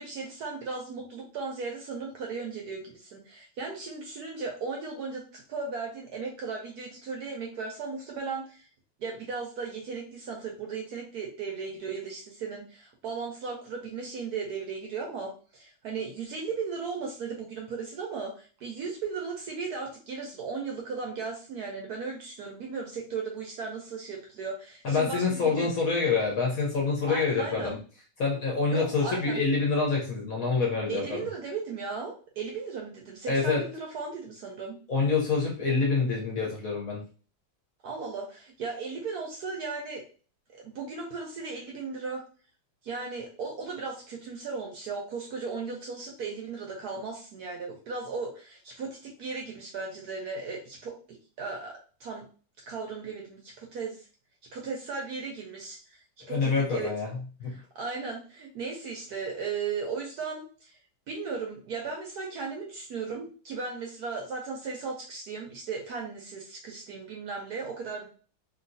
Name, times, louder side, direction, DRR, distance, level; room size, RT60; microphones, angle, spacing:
voice 1, 0.0-8.7 9.0-25.7 27.0-27.8 28.7-29.4 30.9-34.8 37.8-40.0 40.5-42.2 42.8-52.2 52.7-54.1 54.5-56.9 57.5-60.8 61.1-68.1, right 4 dB, 65° right, 0 dB, 1.0 m, -36 dB
voice 2, 24.8-27.8 28.2-31.3 33.3-33.6 34.9-37.0 56.3-57.5, left 4 dB, 60° left, -1 dB, 1.0 m, -26 dB
3.0 x 2.7 x 2.6 m, 0.38 s
omnidirectional pair, 2.1 m